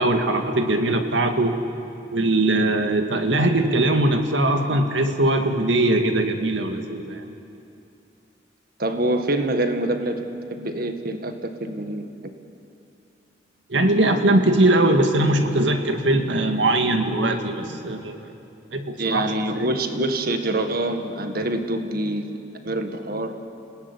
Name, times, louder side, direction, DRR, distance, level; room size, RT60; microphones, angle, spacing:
voice 1, 0.0-1.6 2.1-7.2 13.7-18.2 18.7-19.7, right 1 dB, 75° right, 6 dB, 2.1 m, -21 dB
voice 2, 8.8-12.1 19.0-22.3 22.6-23.3, right 1 dB, 50° right, 7 dB, 1.8 m, -25 dB
29.0 x 18.5 x 9.8 m, 2.7 s
head